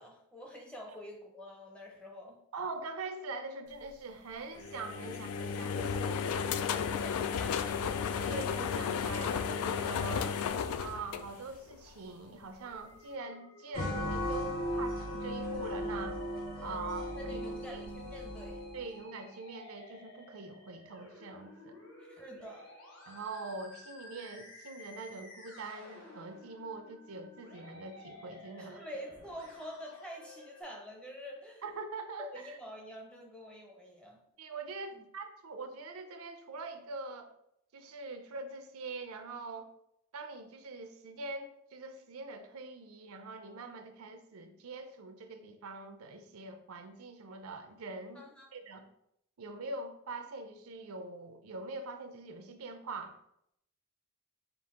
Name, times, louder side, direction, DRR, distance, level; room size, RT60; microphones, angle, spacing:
voice 1, 0.0-2.4 16.5-16.9 17.2-18.6 22.0-22.7 28.6-31.6 32.2-34.2 34.9-35.0 48.1-48.5, equal, 5° left, 0 dB, 0.5 m, -47 dB
voice 2, 2.5-6.2 8.2-10.4 10.8-16.2 16.6-17.4 17.7-17.8 18.7-21.8 23.1-28.8 31.6-32.6 34.4-37.3 37.7-39.7 40.1-48.9 49.4-53.2, right 3 dB, 75° right, 7 dB, 0.5 m, -43 dB
sound 1, 4.6-11.9, left 6 dB, 85° left, 0.3 m, -33 dB
Musical instrument, 12.7-30.6, left 1 dB, 65° left, 1.1 m, -54 dB
sound 2, 13.7-18.9, left 1 dB, 40° left, 0.8 m, -36 dB
5.3 x 2.4 x 3.6 m, 0.77 s
head